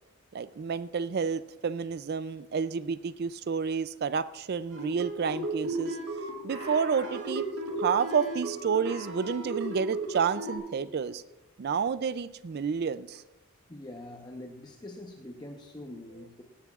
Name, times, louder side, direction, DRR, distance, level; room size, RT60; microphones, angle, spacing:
voice 1, 0.3-6.0 6.4-7.5 7.8-11.2 11.6-13.2, right 6 dB, 45° right, 15 dB, 0.4 m, -30 dB
sound 1, 4.7-10.6, right 2 dB, 70° right, 5.1 m, -35 dB
voice 2, 13.7-16.4, left 1 dB, 20° left, 2 dB, 0.8 m, -44 dB
17.5 x 15.5 x 2.4 m, 0.97 s
head